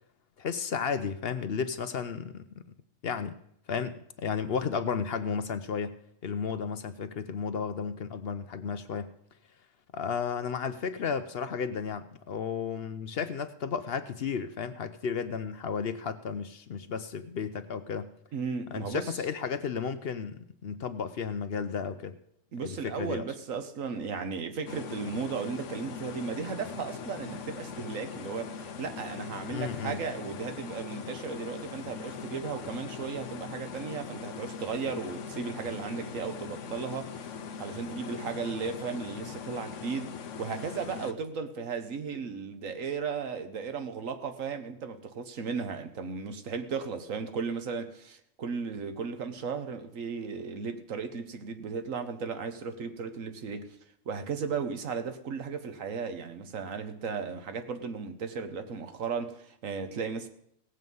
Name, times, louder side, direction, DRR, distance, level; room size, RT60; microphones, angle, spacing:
voice 1, 0.4-2.4 3.0-3.4 3.7-9.1 9.9-18.1 18.7-22.2 22.6-23.3 29.5-30.0, left 6 dB, 55° left, 0.8 m, -33 dB
voice 2, 18.3-19.2 22.5-53.8 54.0-60.3, right 5 dB, 85° right, 1.5 m, -35 dB
sound 1, 24.7-41.1, left 6 dB, 70° left, 1.1 m, -41 dB
17.5 x 7.8 x 5.4 m
omnidirectional pair, 1.3 m